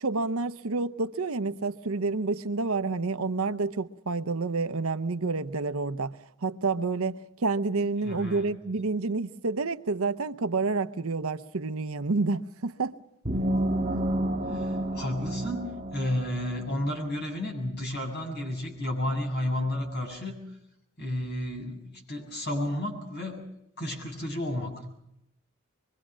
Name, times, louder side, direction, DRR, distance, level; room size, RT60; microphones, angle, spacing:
voice 1, 0.0-12.9 13.7-13.8, right 3 dB, 70° right, 0.8 m, -29 dB
voice 2, 8.0-8.5 14.5-20.6 21.0-23.4 23.8-24.7, left 1 dB, 50° left, 7.5 m, -32 dB
sound 1, 13.3-16.8, right 1 dB, 30° right, 1.7 m, -30 dB
24.5 x 23.5 x 6.2 m
head